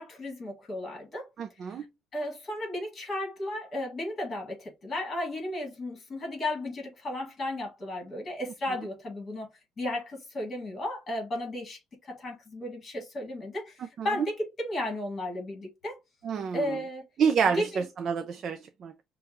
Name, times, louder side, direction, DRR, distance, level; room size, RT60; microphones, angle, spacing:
voice 1, 0.0-1.3 1.6-1.8 2.1-9.5 9.8-16.0 16.5-17.1 17.5-17.9, left 1 dB, 25° left, 2.1 m, -34 dB
voice 2, 1.4-1.9 14.0-14.3 16.2-16.8 17.2-18.9, right 6 dB, 40° right, 0.4 m, -28 dB
6.3 x 2.3 x 3.0 m
cardioid pair, 170°, 0 cm